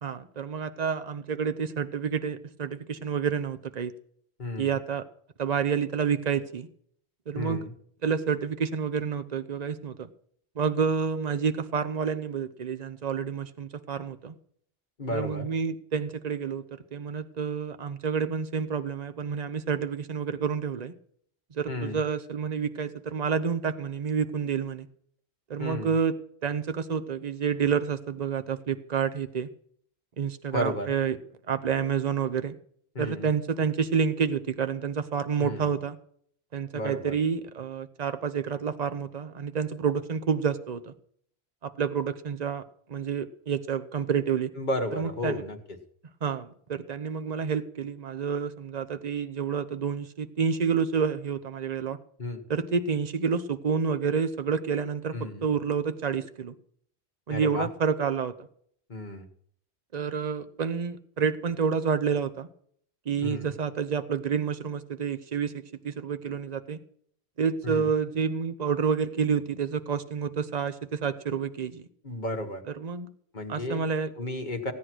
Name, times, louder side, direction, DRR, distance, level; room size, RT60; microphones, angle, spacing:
voice 1, 0.0-3.9 4.6-5.0 5.4-6.7 7.3-7.6 8.0-10.1 10.6-14.3 15.1-20.9 21.6-24.9 25.5-26.1 26.4-29.5 30.2-31.2 31.5-32.5 33.0-36.0 36.5-40.9 41.6-42.6 42.9-44.5 45.0-45.4 46.2-52.0 52.5-56.5 57.3-58.3 59.9-62.5 63.1-66.8 67.4-71.9 72.8-73.1 73.5-74.1, right 6 dB, 40° right, 10 dB, 0.9 m, -29 dB
voice 2, 4.4-4.8 7.3-7.7 15.0-15.5 21.7-22.0 25.6-25.9 30.5-30.9 32.9-33.3 35.4-35.7 36.7-37.2 44.6-45.6 52.2-52.4 55.1-55.5 57.3-57.7 58.9-59.3 63.2-63.5 67.6-67.9 72.0-72.6 73.3-73.9 74.2-74.7, left 1 dB, 45° left, 4 dB, 1.7 m, -33 dB
16.5 x 9.7 x 6.2 m, 0.63 s
omnidirectional pair, 1.1 m